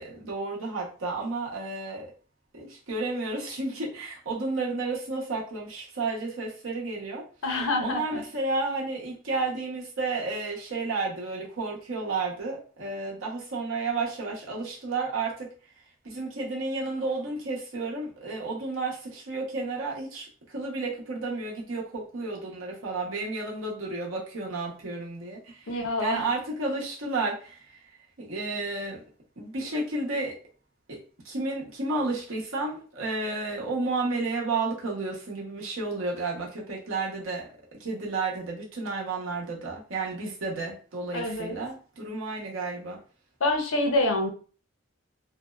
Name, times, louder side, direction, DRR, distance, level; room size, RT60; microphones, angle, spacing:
voice 1, 0.0-2.1 2.5-7.2 7.8-15.5 16.0-27.8 28.2-29.0 29.4-30.3 30.9-31.0 31.2-37.5 37.8-43.0, right 3 dB, 90° right, -2 dB, 0.8 m, -32 dB
voice 2, 7.4-8.2 25.7-26.2 41.1-41.6 43.4-44.3, left 2 dB, 85° left, 4 dB, 0.6 m, -26 dB
2.6 x 2.0 x 2.3 m, 0.39 s
head